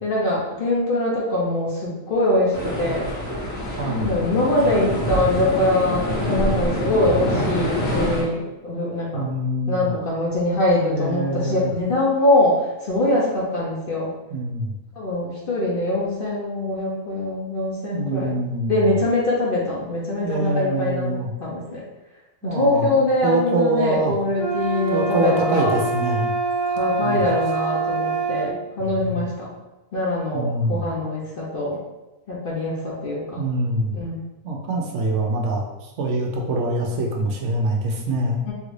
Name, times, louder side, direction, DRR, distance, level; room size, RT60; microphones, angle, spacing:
voice 1, 0.0-3.1 3.9-9.2 9.7-14.1 15.0-18.3 18.7-21.1 21.4-21.8 22.4-25.8 26.7-29.5 29.9-31.8 32.3-33.4 33.9-34.2 38.5-38.6, left 1 dB, 55° left, -4 dB, 0.7 m, -23 dB
sound 1, 2.5-8.2, equal, 75° left, 1.4 m, -26 dB
voice 2, 3.8-4.1 9.1-9.9 10.9-11.7 14.3-14.7 17.8-18.9 20.2-21.3 22.4-24.2 24.9-26.3 27.0-27.2 29.0-29.2 30.3-30.8 33.4-34.0 34.4-38.4, right 2 dB, 70° right, 0 dB, 0.9 m, -24 dB
sound 2, 24.4-28.5, right 4 dB, 30° right, 0.6 m, -25 dB
3.1 x 2.5 x 3.1 m, 1.0 s
omnidirectional pair, 1.4 m